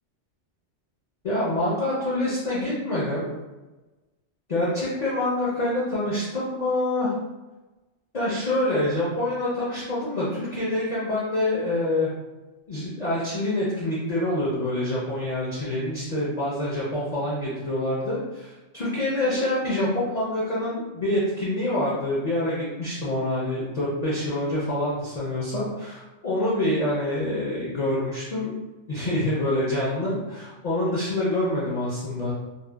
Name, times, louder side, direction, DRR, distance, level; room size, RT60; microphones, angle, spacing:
voice 1, 1.2-3.3 4.5-7.1 8.1-12.1 12.7-28.5 28.9-32.3, left 1 dB, 50° left, -7 dB, 0.5 m, -26 dB
2.7 x 2.1 x 2.2 m, 1.1 s
omnidirectional pair, 1.3 m